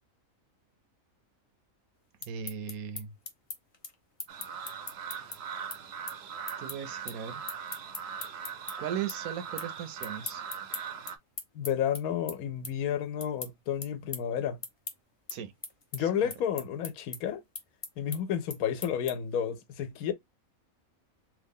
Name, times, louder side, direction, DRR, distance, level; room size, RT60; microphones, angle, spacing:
sound 1, 2.0-8.7 9.1-9.7 10.0-19.4, left 3 dB, 35° left, 0.6 m, -41 dB
voice 1, 2.2-3.1 6.6-7.5 8.8-10.4 15.3-15.5 16.0-16.3, right 8 dB, 85° right, 1.1 m, -38 dB
sound 2, 4.3-11.2, right 7 dB, 65° right, 0.7 m, -40 dB
voice 2, 11.5-14.6 15.9-17.4 18.0-20.1, left 9 dB, 85° left, 1.1 m, -31 dB
3.1 x 2.3 x 3.5 m
omnidirectional pair, 1.5 m